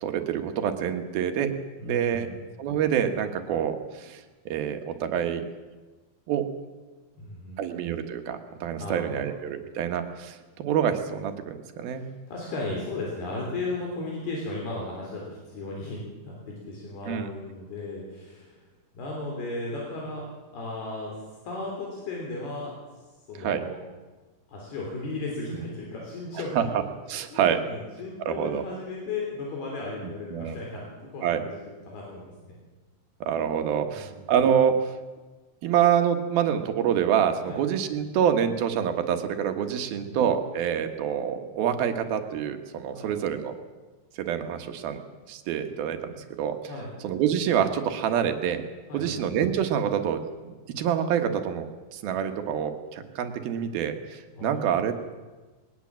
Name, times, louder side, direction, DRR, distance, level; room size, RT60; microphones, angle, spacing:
voice 1, 0.0-1.5 1.8-2.3 2.6-5.4 6.3-6.5 7.6-12.0 17.1-17.3 23.4-23.6 26.6-26.8 27.1-27.6 28.3-28.6 30.0-30.6 31.2-31.4 33.2-34.8 35.6-43.5 44.2-45.0 45.3-46.1 46.4-46.6 47.0-48.6 48.9-51.6 51.9-54.9, right 8 dB, 70° right, 7 dB, 3.2 m, -26 dB
voice 2, 1.8-2.4 7.2-7.7 8.8-9.3 12.0-18.6 19.0-20.3 20.5-21.2 21.4-22.7 23.3-23.7 24.5-26.7 27.3-30.8 31.1-32.5 33.8-34.3 37.5-37.6 39.8-40.2 42.9-43.2 46.7-46.9 48.9-49.2 54.3-54.8, left 2 dB, 75° left, -2 dB, 5.4 m, -35 dB
21.0 x 19.5 x 7.5 m, 1.3 s
omnidirectional pair, 4.6 m